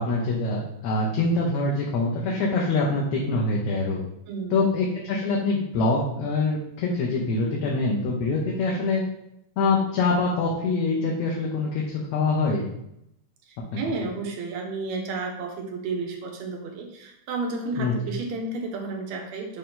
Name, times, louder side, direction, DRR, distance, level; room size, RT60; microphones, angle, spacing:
voice 1, 0.0-4.0 4.5-9.0 9.6-12.6 13.7-13.8 17.8-18.0, left 3 dB, 70° left, -3 dB, 2.1 m, -24 dB
voice 2, 13.5-19.6, right 3 dB, 70° right, 2 dB, 2.0 m, -32 dB
6.8 x 3.8 x 3.8 m, 0.81 s
omnidirectional pair, 3.6 m